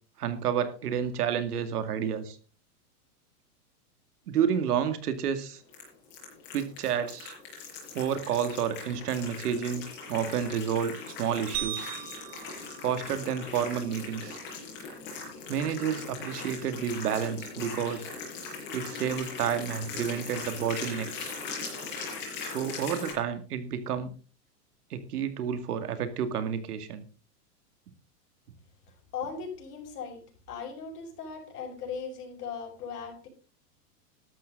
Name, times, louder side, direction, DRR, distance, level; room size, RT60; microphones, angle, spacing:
voice 1, 0.2-2.4 4.3-5.6 6.5-7.4 7.9-10.9 11.2-11.9 12.8-14.4 15.5-18.1 18.7-21.4 22.4-24.1 24.9-27.0, right 8 dB, 75° right, 9 dB, 2.5 m, -30 dB
sound 1, 5.7-23.1, left 4 dB, 25° left, 5.7 m, -40 dB
sound 2, 11.5-13.9, right 12 dB, 30° right, 2.7 m, -39 dB
voice 2, 29.1-30.2 30.5-33.3, left 6 dB, 75° left, 2 dB, 6.6 m, -38 dB
13.5 x 12.0 x 3.9 m, 0.36 s
supercardioid pair, 175°, 47 cm